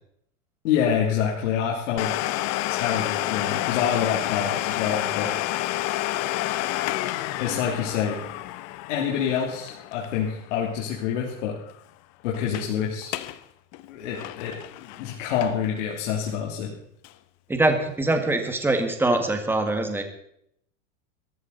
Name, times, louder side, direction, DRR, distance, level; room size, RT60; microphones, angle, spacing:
voice 1, 0.6-2.1 2.7-5.3 7.4-8.2 8.9-11.6 12.2-13.2 13.9-14.6 14.8-16.7, left 8 dB, 70° left, -2 dB, 3.1 m, -27 dB
Domestic sounds home sounds, 2.0-11.4 11.7-11.8 12.3-12.7 13.0-13.4 13.7-15.8 16.3-16.4 17.0-17.1, left 16 dB, 45° left, 0.9 m, -29 dB
voice 2, 17.5-20.0, right 2 dB, 5° right, 5 dB, 1.9 m, -23 dB
19.5 x 14.0 x 4.1 m, 0.71 s
supercardioid pair, 140°, 38 cm